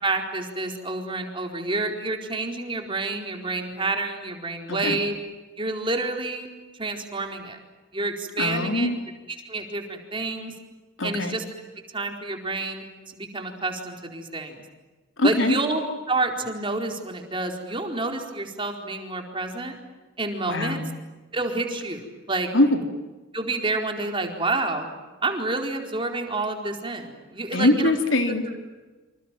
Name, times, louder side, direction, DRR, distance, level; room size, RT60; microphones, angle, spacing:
voice 1, 0.0-5.2 5.6-6.5 6.7-7.6 7.9-8.9 9.4-10.5 11.0-11.4 11.9-14.6 15.2-15.8 16.1-19.8 20.2-20.8 21.3-22.5 23.3-24.9 25.2-27.9, right 2 dB, 25° right, 3 dB, 4.4 m, -28 dB
voice 2, 4.7-5.0 8.4-9.0 11.0-11.4 15.2-15.6 20.5-20.9 22.5-22.8 27.5-28.5, left 1 dB, 80° left, 6 dB, 3.3 m, -22 dB
28.0 x 26.5 x 7.7 m, 1.2 s
head